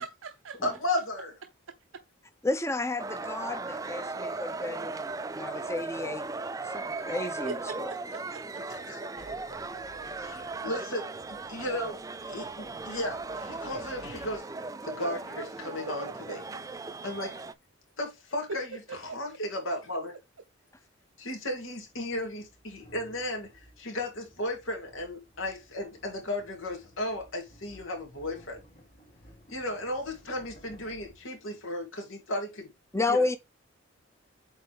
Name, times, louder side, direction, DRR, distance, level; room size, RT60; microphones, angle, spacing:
voice 1, 0.0-0.6 7.5-8.6 9.5-9.6 9.9-10.1 15.9-16.0 18.9-19.0, right 5 dB, 80° right, 0.7 m, -42 dB
voice 2, 0.6-1.3 8.7-9.0 10.0-14.5 14.8-16.4 17.0-17.4 18.0-20.1 21.2-28.6 29.5-32.7 33.1-33.3, left 1 dB, 80° left, 2.8 m, -35 dB
voice 3, 2.4-6.3 6.7-7.9 32.9-33.4, left 2 dB, 15° left, 0.7 m, -32 dB
sound 1, 3.0-17.5, right 3 dB, 15° right, 0.3 m, -37 dB
sound 2, 9.2-10.8 11.1-14.4, left 1 dB, 60° left, 1.5 m, -53 dB
sound 3, 20.3-20.4 21.4-32.0, equal, 40° left, 2.8 m, -57 dB
8.1 x 4.2 x 3.5 m
head